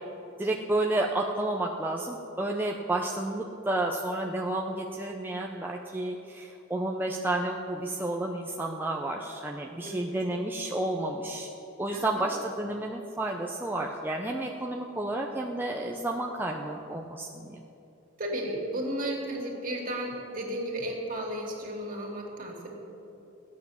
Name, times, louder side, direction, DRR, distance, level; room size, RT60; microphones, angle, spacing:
voice 1, 0.4-11.5 11.8-17.6, right 2 dB, 10° right, 0 dB, 0.6 m, -31 dB
voice 2, 9.8-10.1 11.9-12.3 18.2-22.7, right 1 dB, 45° right, -1 dB, 2.6 m, -34 dB
15.0 x 9.4 x 7.0 m, 3.0 s
head